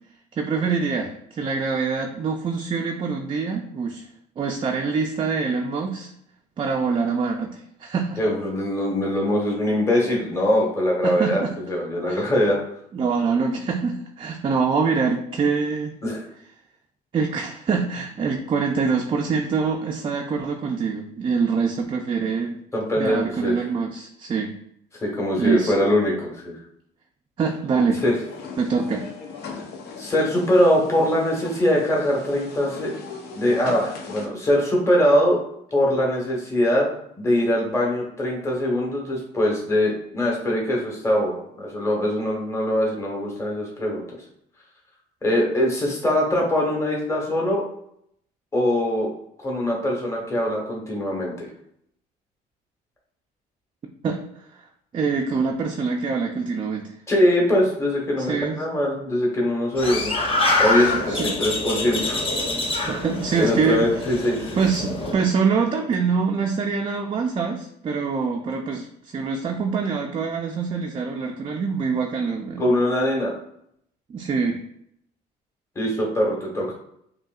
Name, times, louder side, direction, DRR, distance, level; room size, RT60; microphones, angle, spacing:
voice 1, 0.3-4.0 4.4-6.1 6.6-8.2 11.0-11.6 12.1-12.3 12.9-15.9 17.1-22.6 22.9-24.5 25.4-25.7 27.4-28.0 28.6-29.1 54.0-54.2 54.5-54.6 54.9-56.9 58.2-58.8 60.9-61.4 62.9-63.9 64.5-72.6 74.1-74.6, right 5 dB, 30° right, 2 dB, 0.4 m, -25 dB
voice 2, 8.2-12.6 16.0-16.3 22.7-23.5 25.0-26.6 28.0-28.1 30.0-32.9 33.3-35.4 35.7-36.9 37.2-44.0 45.2-47.6 48.5-49.1 49.4-51.5 57.1-60.1 60.6-62.2 63.4-64.6 72.6-73.3 75.7-76.7, left 1 dB, 15° left, -2 dB, 1.1 m, -22 dB
sound 1, 28.2-34.3, left 5 dB, 75° left, 0.7 m, -38 dB
sound 2, 59.8-65.1, left 2 dB, 35° left, 0.8 m, -25 dB
5.3 x 2.7 x 2.4 m, 0.72 s
cardioid pair, 110°, 17 cm